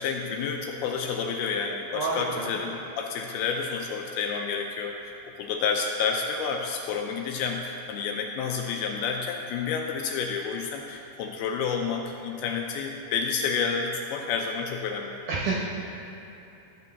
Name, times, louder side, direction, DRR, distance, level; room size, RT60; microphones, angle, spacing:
voice 1, 0.0-15.2, left 5 dB, 80° left, 2 dB, 2.3 m, -30 dB
voice 2, 2.0-2.6 15.3-15.6, right 3 dB, 75° right, -4 dB, 2.0 m, -29 dB
13.5 x 6.7 x 4.1 m, 2.8 s
omnidirectional pair, 4.8 m